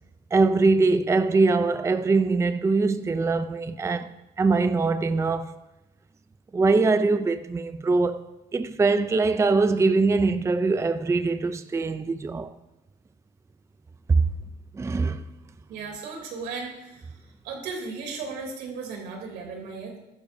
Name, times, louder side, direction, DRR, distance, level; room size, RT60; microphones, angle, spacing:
voice 1, 0.3-4.1 4.4-5.6 6.5-8.2 8.5-12.5 14.1-14.2 14.7-15.3, right 3 dB, 15° right, 0.5 m, -22 dB
voice 2, 15.7-17.1 17.4-20.0, right 4 dB, 90° right, 3.1 m, -36 dB
14.5 x 11.5 x 2.7 m
cardioid pair, 110°, 17 cm